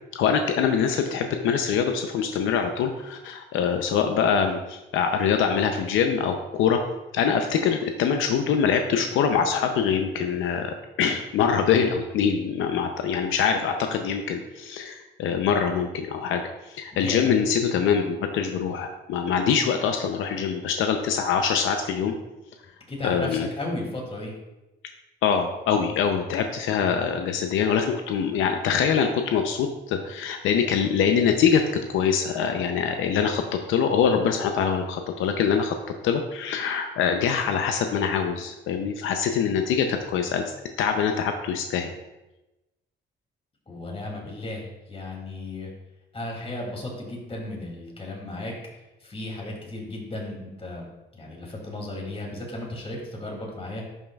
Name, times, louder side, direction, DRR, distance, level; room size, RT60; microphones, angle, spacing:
voice 1, 0.1-6.8 7.1-22.1 23.0-23.5 25.2-35.8 36.0-40.4 40.8-41.9, left 7 dB, 85° left, 5 dB, 0.6 m, -24 dB
voice 2, 16.9-17.3 22.9-24.3 43.7-45.7 46.1-48.5 49.0-50.9 51.1-53.8, left 2 dB, 30° left, -1 dB, 2.6 m, -34 dB
11.0 x 5.4 x 2.3 m, 1.0 s
cardioid pair, 90°, 20 cm